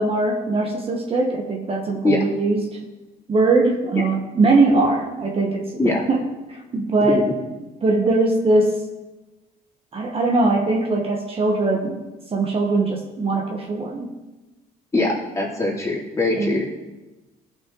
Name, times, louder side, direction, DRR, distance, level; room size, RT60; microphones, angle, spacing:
voice 1, 0.0-2.8 3.3-6.2 6.5-7.2 7.8-8.8 9.9-12.0 12.3-14.1 15.0-15.1 16.4-16.6, right 3 dB, 35° right, 1 dB, 1.3 m, -21 dB
voice 2, 14.9-16.6, left 2 dB, 15° left, -4 dB, 2.9 m, -22 dB
16.0 x 5.7 x 3.9 m, 1.1 s
cardioid pair, 110°, 17 cm